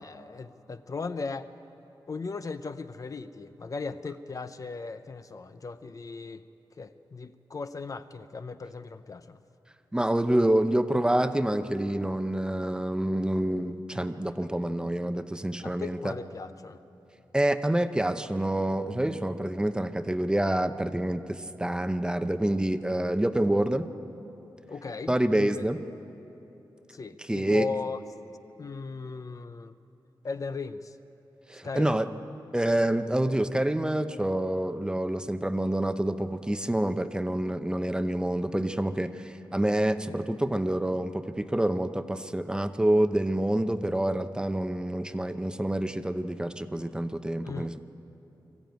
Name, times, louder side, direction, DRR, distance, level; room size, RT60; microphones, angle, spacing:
voice 1, 0.0-1.5 2.1-6.4 6.8-9.4 15.6-16.8 24.7-25.6 26.9-28.0 28.6-29.8 30.2-31.0 31.6-32.0 47.4-47.7, left 4 dB, 45° left, 10 dB, 0.6 m, -37 dB
voice 2, 9.9-16.1 17.3-23.9 25.1-25.8 27.3-27.7 31.5-32.1 32.5-47.8, right 1 dB, 10° right, 9 dB, 0.7 m, -27 dB
23.0 x 14.5 x 9.2 m, 2.9 s
wide cardioid pair, 145°, 8 cm